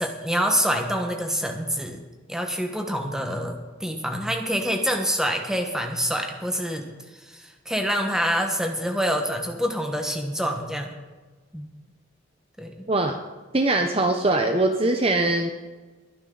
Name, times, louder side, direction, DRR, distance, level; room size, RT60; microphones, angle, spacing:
voice 1, 0.0-2.0 2.3-6.8 7.1-11.0 11.5-11.7 12.6-12.9, equal, 5° right, 3 dB, 1.3 m, -26 dB
voice 2, 13.5-15.5, right 2 dB, 30° right, 5 dB, 0.7 m, -22 dB
21.0 x 9.8 x 3.9 m, 1.3 s
head